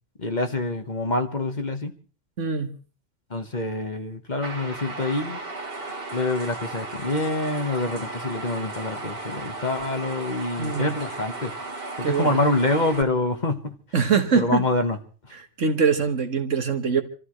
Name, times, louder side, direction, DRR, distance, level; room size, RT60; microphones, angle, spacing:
voice 1, 0.2-1.9 3.3-5.4 6.1-11.5 12.0-13.8 14.3-15.0 15.2-15.3, left 2 dB, 35° left, 6 dB, 1.5 m, -26 dB
voice 2, 2.4-2.7 10.6-10.9 12.0-12.4 13.9-14.7 15.3-17.0, right 6 dB, 80° right, 7 dB, 1.9 m, -23 dB
sound 1, 4.4-13.0, right 2 dB, 50° right, 2.2 m, -35 dB
27.5 x 14.0 x 3.2 m, 0.38 s
omnidirectional pair, 1.3 m